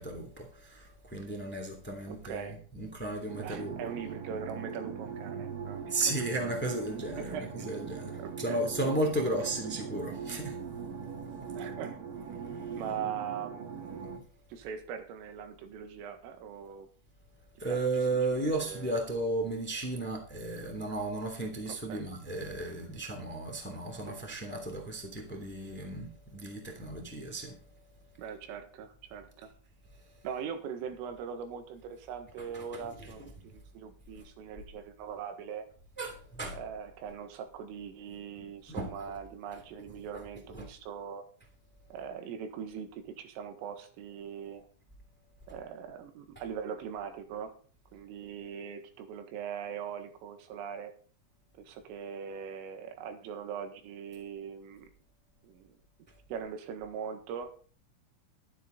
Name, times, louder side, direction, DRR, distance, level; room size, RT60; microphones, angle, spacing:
voice 1, 0.0-3.9 5.8-10.6 12.6-12.8 17.6-27.6 32.5-33.3 36.0-36.6 38.7-38.9 40.5-40.6, right 2 dB, 5° left, 0.9 m, -34 dB
voice 2, 2.0-2.6 3.4-6.2 7.2-7.7 8.2-8.6 9.5-9.6 11.5-12.0 12.7-14.2 14.5-16.9 17.6-17.8 18.1-19.0 21.7-22.1 24.1-24.2 28.2-29.5 30.2-35.7 36.5-41.2 41.9-44.7 45.5-47.5 47.9-50.9 51.5-54.9 55.4-55.7 56.3-57.6, right 7 dB, 80° right, 4.1 m, -41 dB
sound 1, 3.3-14.2, right 6 dB, 50° right, 3.3 m, -41 dB
13.0 x 11.0 x 3.9 m
omnidirectional pair, 5.9 m